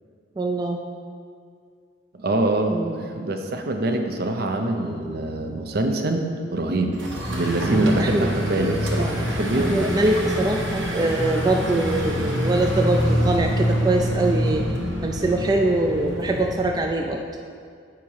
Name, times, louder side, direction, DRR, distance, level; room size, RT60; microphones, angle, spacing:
voice 1, 0.4-0.8 2.7-3.0 8.0-8.3 9.0-9.2 9.6-14.6 15.0-17.2, right 2 dB, 20° right, 2 dB, 0.3 m, -23 dB
voice 2, 2.1-7.0 7.3-9.9, right 2 dB, 60° right, 4 dB, 0.6 m, -24 dB
sound 1, 6.9-16.7, equal, 90° right, 1.3 m, -25 dB
7.1 x 5.0 x 4.7 m, 2.2 s
head